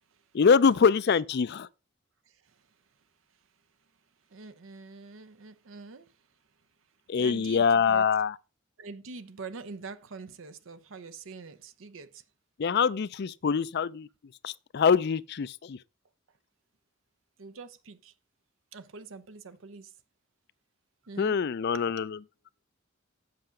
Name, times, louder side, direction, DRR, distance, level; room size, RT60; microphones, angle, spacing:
voice 1, 0.3-1.7 7.1-8.4 12.6-14.1 14.4-15.8 21.2-22.2, left 6 dB, 55° left, 0.4 m, -24 dB
voice 2, 4.3-6.1 7.2-8.0 8.8-12.2 17.4-18.1 18.7-19.9 21.0-21.4, right 4 dB, 75° right, 0.7 m, -44 dB
7.8 x 5.7 x 5.1 m
head